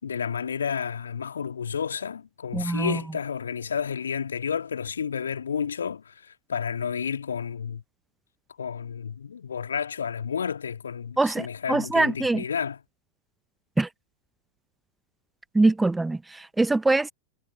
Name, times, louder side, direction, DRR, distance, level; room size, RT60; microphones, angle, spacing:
voice 1, 0.0-7.8 8.6-12.8, left 7 dB, 70° left, 2.5 m, -31 dB
voice 2, 2.5-3.0 11.2-12.4 13.8-13.9 15.5-17.1, right 2 dB, 10° right, 0.8 m, -23 dB
figure-of-eight pair, 90°, 0 cm